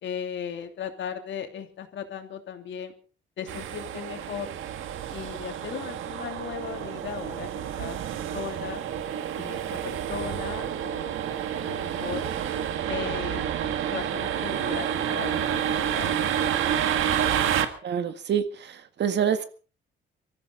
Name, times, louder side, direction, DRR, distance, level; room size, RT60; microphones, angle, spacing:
voice 1, 0.0-2.9 3.4-4.5 5.1-7.5 7.8-8.0 8.3-8.8 9.4-11.2 11.6-12.3 12.9-13.4 13.9-16.2, left 8 dB, 70° left, 5 dB, 3.0 m, -37 dB
sound 1, 3.5-17.6, right 9 dB, 85° right, 1.8 m, -29 dB
voice 2, 17.8-19.4, right 8 dB, 60° right, 10 dB, 1.8 m, -27 dB
23.5 x 14.5 x 3.9 m, 0.36 s
cardioid pair, 90°, 20 cm